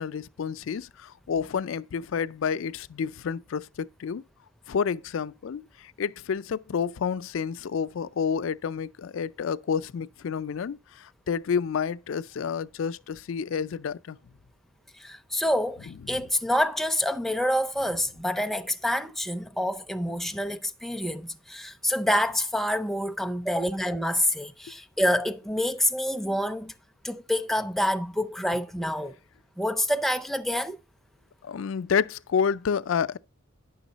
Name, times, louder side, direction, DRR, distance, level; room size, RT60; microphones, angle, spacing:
voice 1, 0.0-4.2 4.7-14.2 16.0-16.2 31.4-33.2, left 6 dB, 80° left, 0.4 m, -29 dB
voice 2, 15.0-26.7 27.0-29.2 29.6-30.8, left 1 dB, ahead, 0.4 m, -27 dB
10.0 x 6.3 x 4.0 m
head